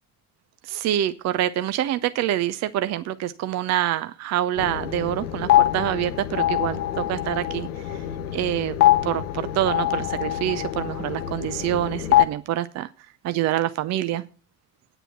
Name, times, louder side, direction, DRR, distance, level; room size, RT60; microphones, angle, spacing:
voice 1, 0.7-7.7 8.3-8.7 9.0-12.9 13.2-14.2, right 12 dB, 35° right, 13 dB, 0.6 m, -26 dB
sound 1, 4.6-12.2, left 13 dB, 70° left, 0.9 m, -24 dB
9.2 x 9.0 x 5.7 m, 0.38 s
figure-of-eight pair, 55°, 47 cm